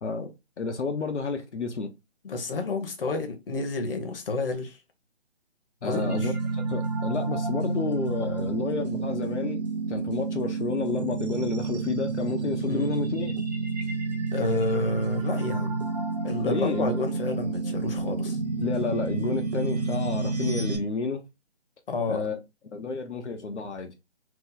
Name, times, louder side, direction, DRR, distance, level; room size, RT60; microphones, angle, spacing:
voice 1, 0.0-1.9 5.8-6.3 6.7-9.6 9.9-13.3 16.5-17.0 18.6-21.2 22.1-22.4 22.6-23.9, left 4 dB, 85° left, 0.7 m, -30 dB
voice 2, 2.2-4.8 5.8-6.3 12.6-12.9 14.3-15.8 16.2-18.4 21.9-22.2, left 3 dB, 55° left, 0.9 m, -30 dB
sound 1, 5.9-20.8, right 3 dB, 40° right, 0.5 m, -30 dB
2.9 x 2.1 x 3.7 m
figure-of-eight pair, 155°, 34 cm